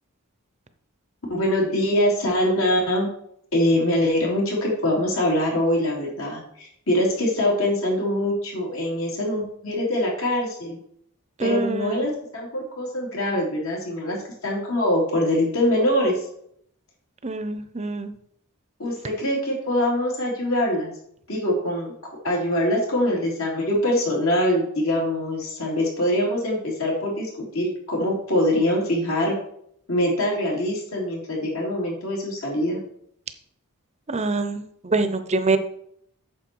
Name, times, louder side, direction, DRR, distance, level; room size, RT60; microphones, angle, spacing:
voice 1, 1.3-3.1 3.5-10.8 11.4-14.2 14.4-16.2 18.8-20.9 21.3-21.9 22.2-29.4 29.9-32.8, left 1 dB, 65° left, -3 dB, 3.7 m, -23 dB
voice 2, 11.4-12.1 17.2-18.1 34.1-35.6, right 3 dB, 30° right, 10 dB, 0.8 m, -25 dB
9.1 x 7.0 x 4.7 m, 0.68 s
head